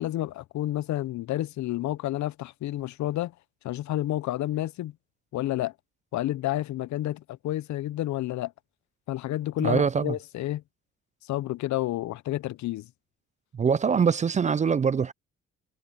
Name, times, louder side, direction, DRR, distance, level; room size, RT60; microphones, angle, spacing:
voice 1, 0.0-3.3 3.6-4.9 5.3-5.7 6.1-8.5 9.1-10.6 11.2-12.9, left 14 dB, 70° left, 0.6 m, -30 dB
voice 2, 9.6-10.1 13.5-15.1, right 6 dB, 25° right, 0.3 m, -23 dB
cardioid pair, 90°, 30 cm